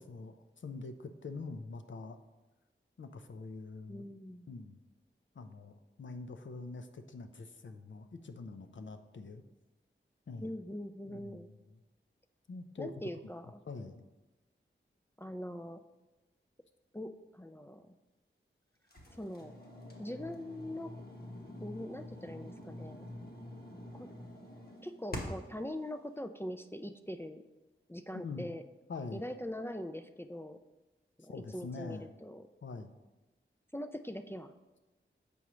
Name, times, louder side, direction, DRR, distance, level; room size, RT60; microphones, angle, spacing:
voice 1, 0.0-2.2 3.0-4.1 4.5-4.8 5.3-9.4 10.3-10.5 11.1-11.8 12.5-12.9 13.7-14.0 28.1-28.6 28.9-29.2 31.3-32.1 32.6-32.9, left 3 dB, 65° left, 9 dB, 0.5 m, -44 dB
voice 2, 3.9-4.5 10.4-11.5 12.8-13.6 15.2-15.8 16.9-17.9 19.2-19.6 20.0-20.9 21.6-23.0 23.9-24.1 24.8-27.4 27.9-28.6 29.1-30.6 31.2-32.5 33.7-34.5, left 1 dB, 10° left, 8 dB, 0.3 m, -42 dB
sound 1, 18.9-25.6, left 1 dB, 50° left, 1.1 m, -46 dB
6.9 x 4.9 x 3.1 m, 1.1 s
wide cardioid pair, 45°, 21 cm